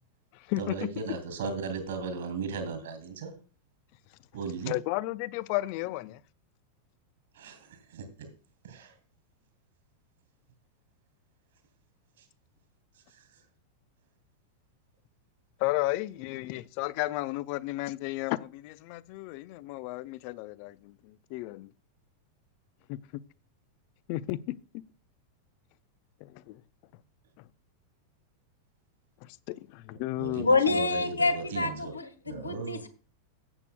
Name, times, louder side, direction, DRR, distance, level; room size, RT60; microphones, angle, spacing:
voice 1, 0.6-3.3 4.3-4.7 7.4-8.1 8.6-8.9 30.2-31.9 32.3-32.8, right 4 dB, 60° right, 2.6 m, -36 dB
voice 2, 4.7-6.2 15.6-21.7 22.9-23.0 24.1-24.6 26.2-26.6 29.2-30.8, left 18 dB, 45° left, 0.5 m, -33 dB
voice 3, 30.4-32.9, left 3 dB, 80° left, 1.4 m, -27 dB
16.0 x 8.3 x 2.2 m
figure-of-eight pair, 90°, 0 cm